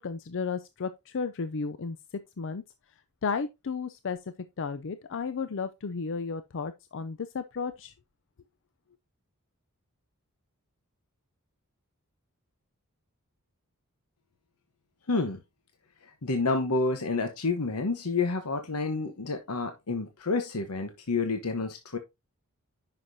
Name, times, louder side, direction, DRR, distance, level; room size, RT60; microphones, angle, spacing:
voice 1, 0.0-2.0 2.4-2.6 3.2-7.9, left 5 dB, 60° left, 0.5 m, -33 dB
voice 2, 15.1-15.4 16.2-22.0, left 3 dB, 80° left, 1.0 m, -29 dB
10.0 x 5.8 x 2.7 m
head